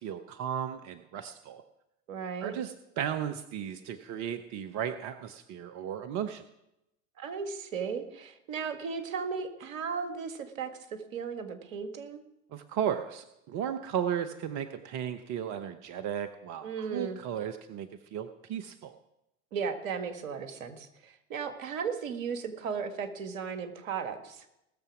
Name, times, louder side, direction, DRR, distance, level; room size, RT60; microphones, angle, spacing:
voice 1, 0.0-1.6 2.4-6.4 12.5-18.9, right 9 dB, 45° right, 10 dB, 0.9 m, -35 dB
voice 2, 2.1-2.5 7.2-12.2 16.6-17.2 19.5-24.5, right 6 dB, 70° right, 9 dB, 1.7 m, -36 dB
18.5 x 6.9 x 6.0 m, 0.86 s
hypercardioid pair, 80°, 42 cm